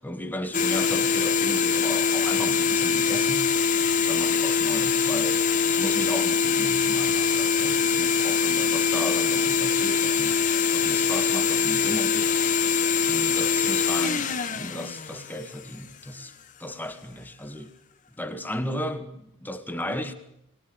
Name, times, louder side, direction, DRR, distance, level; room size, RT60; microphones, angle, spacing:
voice 1, 0.0-3.5 4.1-10.5 10.7-12.8 13.0-17.7 18.2-20.1, left 1 dB, 10° left, 2.0 m, -35 dB
sound 1, 0.5-15.8, left 6 dB, 35° left, 1.5 m, -23 dB
23.0 x 21.0 x 10.0 m
head